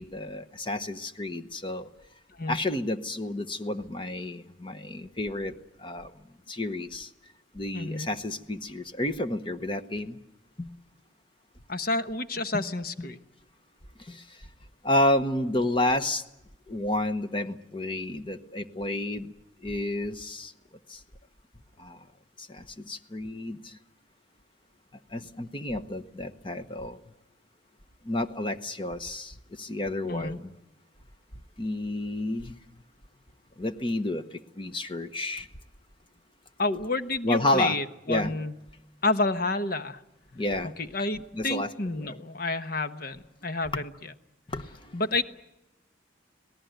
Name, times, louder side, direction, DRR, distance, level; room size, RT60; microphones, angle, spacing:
voice 1, 0.0-1.9 2.5-5.5 5.8-6.1 6.5-7.1 7.5-10.2 10.6-10.7 12.5-12.6 13.0-13.1 14.1-14.2 14.8-16.2 16.7-19.3 19.6-20.5 20.9-21.0 21.8-22.0 22.5-23.7 25.1-27.0 28.1-30.5 31.6-32.5 33.6-34.2 34.6-35.5 37.2-37.8 38.1-38.3 40.3-40.7 41.3-41.7 42.0-42.2 44.5-44.6, left 1 dB, 25° left, 10 dB, 1.0 m, -30 dB
voice 2, 7.7-8.1 11.7-13.2 30.0-30.4 36.6-38.6 39.0-40.0 40.8-43.9 44.9-45.2, left 2 dB, 50° left, 10 dB, 1.1 m, -29 dB
26.0 x 18.5 x 9.2 m, 0.91 s
head